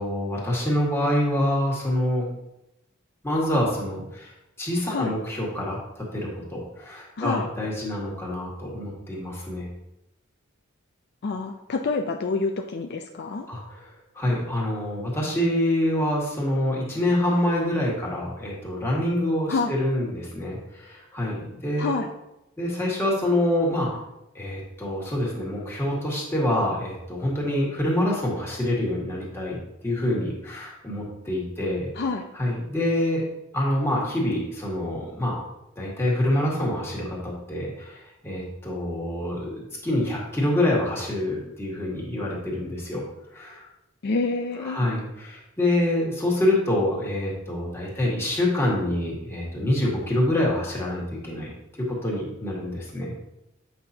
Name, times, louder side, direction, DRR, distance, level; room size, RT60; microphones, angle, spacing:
voice 1, 0.0-2.3 3.2-4.3 4.6-9.7 13.5-13.8 14.2-21.9 22.6-23.9 24.4-29.6 29.8-31.9 32.3-33.2 33.5-35.4 35.8-38.0 38.2-43.0 43.3-43.6 44.6-53.1, left 1 dB, 10° left, -5 dB, 1.8 m, -26 dB
voice 2, 7.2-7.5 11.2-13.5 19.5-19.7 21.8-22.1 32.0-32.3 44.0-44.9, left 4 dB, 50° left, 4 dB, 0.4 m, -27 dB
7.8 x 5.7 x 2.8 m, 0.88 s
head